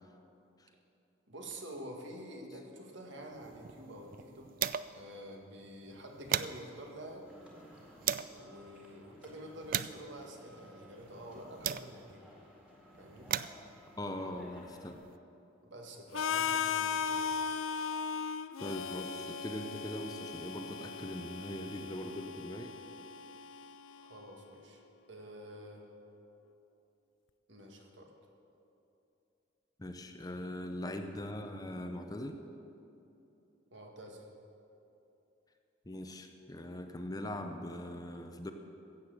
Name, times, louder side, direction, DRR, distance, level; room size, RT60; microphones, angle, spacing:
voice 1, 1.3-4.5 4.9-7.3 8.3-12.2 12.9-13.3 15.6-17.4 24.0-24.8 25.1-25.9 27.5-28.1 33.7-34.3, right 1 dB, 65° right, 1 dB, 1.8 m, -48 dB
sound 1, 3.3-5.1 5.4-5.5 5.9-8.4 9.0-12.2 12.9-15.2, right 10 dB, 45° right, 0.3 m, -39 dB
sound 2, 7.2-14.9, equal, 5° right, 2.0 m, -58 dB
voice 2, 14.0-15.0 18.6-22.7 29.8-32.4 35.9-38.5, left 1 dB, 20° left, 6 dB, 0.6 m, -41 dB
Harmonica, 16.1-24.0, left 6 dB, 80° left, 0.5 m, -37 dB
16.0 x 7.2 x 7.8 m, 2.9 s
head